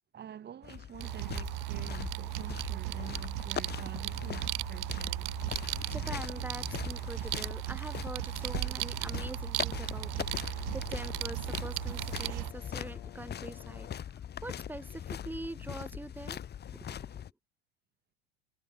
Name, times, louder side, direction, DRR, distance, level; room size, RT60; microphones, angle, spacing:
voice 1, 0.1-5.3, right 9 dB, 30° right, 2.6 m, -47 dB
sound 1, 0.6-17.3, left 9 dB, 30° left, 2.1 m, -41 dB
sound 2, 1.0-12.5, right 40 dB or more, 50° right, 0.4 m, -36 dB
voice 2, 5.9-16.4 16.7-17.2, right 2 dB, 5° right, 3.0 m, -44 dB
Brass instrument, 10.0-14.2, left 22 dB, 65° left, 4.5 m, -55 dB
hypercardioid pair, 80°, 33 cm